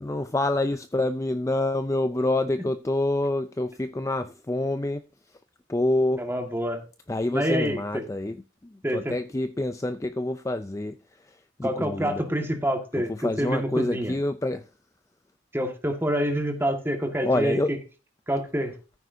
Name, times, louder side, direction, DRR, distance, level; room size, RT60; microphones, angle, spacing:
voice 1, 0.0-5.0 5.7-6.2 7.1-8.4 8.6-11.0 11.6-12.2 12.9-14.6 17.2-17.7, left 2 dB, 15° left, 0.4 m, -27 dB
voice 2, 6.2-6.8 7.3-8.1 8.8-9.2 11.6-14.1 15.5-17.8 18.3-18.7, equal, 10° right, 1.7 m, -27 dB
14.5 x 9.2 x 2.7 m
head